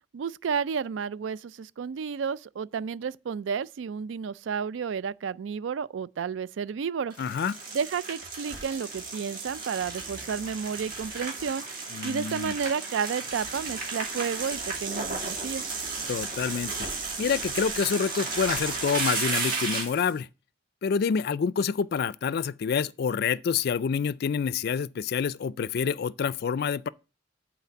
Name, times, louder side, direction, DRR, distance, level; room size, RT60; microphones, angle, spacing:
voice 1, 0.1-7.1 7.7-11.7 12.0-15.7, right 6 dB, 90° right, 0.4 m, -31 dB
sound 1, 7.1-20.1, right 3 dB, 50° right, 2.6 m, -33 dB
voice 2, 7.2-7.6 11.9-12.5 16.1-16.7 17.2-20.3 20.8-26.9, left 6 dB, 55° left, 0.3 m, -27 dB
8.3 x 4.2 x 6.7 m
head